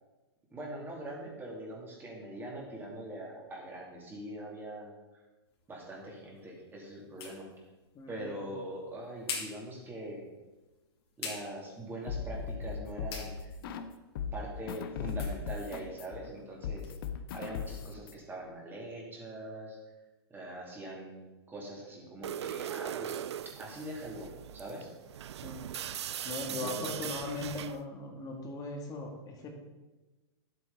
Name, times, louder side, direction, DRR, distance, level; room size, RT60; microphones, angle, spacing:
voice 1, 0.5-5.2 5.7-7.5 8.1-10.3 11.2-13.5 14.3-16.9 17.3-19.8 20.3-23.2 23.6-24.9 26.2-27.1, right 1 dB, 15° right, -2 dB, 2.7 m, -43 dB
sound 1, 5.5-17.0, left 5 dB, 75° left, 2.8 m, -48 dB
sound 2, 12.1-13.9 14.1-18.1, left 6 dB, 60° left, 0.9 m, -38 dB
sound 3, 22.2-27.8, right 10 dB, 85° right, 0.4 m, -40 dB
voice 2, 26.3-29.5, left 2 dB, 25° left, 2 dB, 1.7 m, -39 dB
11.5 x 8.0 x 4.0 m, 1.2 s
hypercardioid pair, 130°, 14 cm